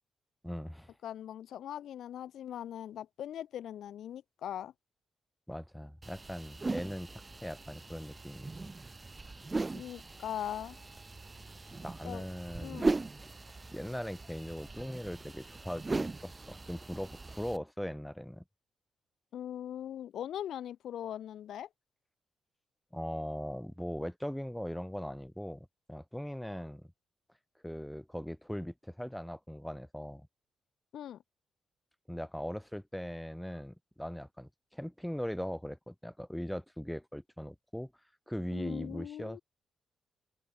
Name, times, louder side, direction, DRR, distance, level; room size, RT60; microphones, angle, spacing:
voice 1, 0.4-0.9 5.5-8.5 11.8-12.8 13.7-18.4 22.9-26.9 27.6-30.3 32.1-37.9 38.3-39.4, equal, 5° left, 1.8 m, -40 dB
voice 2, 1.0-4.7 9.7-10.8 12.0-12.3 12.6-12.9 19.3-21.7 30.9-31.2 38.5-39.4, left 10 dB, 75° left, 0.9 m, -40 dB
sound 1, 6.0-17.6, right 3 dB, 30° right, 1.0 m, -39 dB
sound 2, 6.2-13.5, left 2 dB, 20° left, 5.2 m, -66 dB
open air
supercardioid pair, 55°, 0 cm